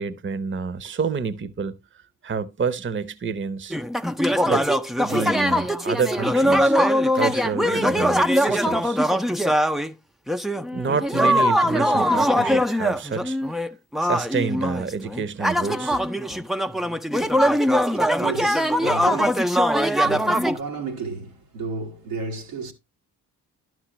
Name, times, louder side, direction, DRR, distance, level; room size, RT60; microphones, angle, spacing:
voice 1, 0.0-1.8 2.2-3.8 4.4-4.6 5.0-6.8 7.1-9.0 10.7-13.4 14.0-16.0, right 5 dB, 25° right, 0.8 m, -28 dB
sound 1, 3.7-9.9 10.3-20.6, equal, ahead, 0.4 m, -21 dB
voice 2, 17.2-22.7, right 3 dB, 90° right, 1.6 m, -34 dB
11.5 x 6.1 x 3.0 m
hypercardioid pair, 45°, 48 cm